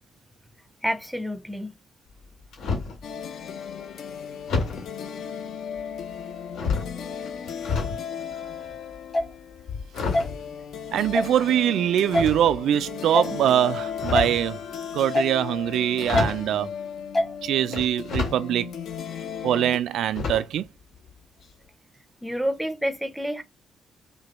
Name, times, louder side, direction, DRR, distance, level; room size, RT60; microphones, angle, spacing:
voice 1, 0.8-1.8 22.2-23.4, equal, ahead, 0.5 m, -28 dB
sound 1, 2.1-3.0 4.5-4.9 5.7-6.2 6.5-8.0 8.3-11.3 12.1-12.8 13.8-14.5 15.6-15.7 16.0-16.5 17.7-18.4 18.9-19.0 20.1-20.7 20.9-21.1 21.4-21.5, left 4 dB, 90° left, 1.6 m, -30 dB
sound 2, 3.0-19.8, left 7 dB, 65° left, 0.6 m, -36 dB
sound 3, 9.1-9.3 10.1-10.3 11.1-11.3 12.1-12.3 13.1-13.3 14.1-14.3 15.1-15.3 16.1-16.3 17.1-17.3, left 1 dB, 25° left, 1.0 m, -22 dB
voice 2, 10.9-14.6 14.9-16.7 17.4-18.7 19.4-20.7, right 10 dB, 90° right, 0.3 m, -23 dB
5.1 x 2.2 x 2.9 m
cardioid pair, 155°, 0 cm